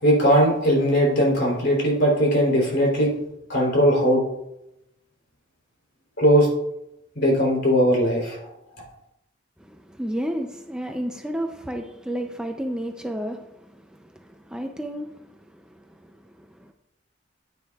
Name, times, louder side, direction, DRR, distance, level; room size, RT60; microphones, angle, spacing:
voice 1, 0.0-3.1 3.5-4.2 6.2-6.5 7.1-8.4, equal, 60° left, 3.3 m, -19 dB
voice 2, 9.6-16.7, equal, 5° right, 0.4 m, -32 dB
9.7 x 9.3 x 2.3 m
head